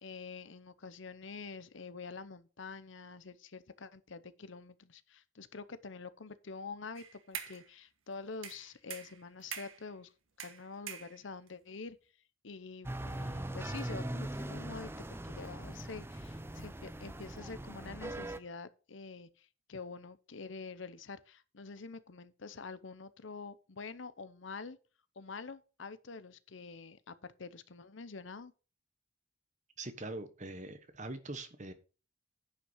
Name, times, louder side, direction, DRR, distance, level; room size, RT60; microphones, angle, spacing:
voice 1, 0.0-10.1 10.4-12.0 12.4-14.9 15.2-24.8 25.2-28.5, left 4 dB, 70° left, 0.8 m, -46 dB
sound 1, 7.0-7.7 8.4-9.9 10.4-11.5, right 8 dB, 90° right, 1.4 m, -45 dB
sound 2, 12.8-18.4, right 1 dB, 10° right, 0.6 m, -41 dB
voice 2, 29.8-31.7, right 2 dB, 35° right, 1.2 m, -43 dB
10.0 x 5.8 x 5.7 m
head